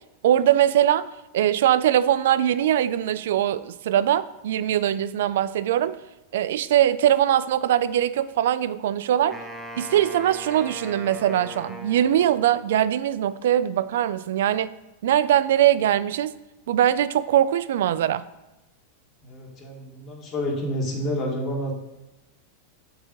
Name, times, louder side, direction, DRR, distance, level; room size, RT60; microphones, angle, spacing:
voice 1, 0.2-1.1 1.3-6.0 6.3-9.4 9.8-14.7 15.0-16.3 16.7-18.2, right 11 dB, 75° right, 16 dB, 0.3 m, -21 dB
Wind instrument woodwind instrument, 9.3-12.8, right 1 dB, 10° right, 0.8 m, -39 dB
voice 2, 19.2-21.7, equal, 25° left, -3 dB, 1.9 m, -29 dB
6.4 x 3.9 x 4.6 m, 1.0 s
hypercardioid pair, 120°, 0 cm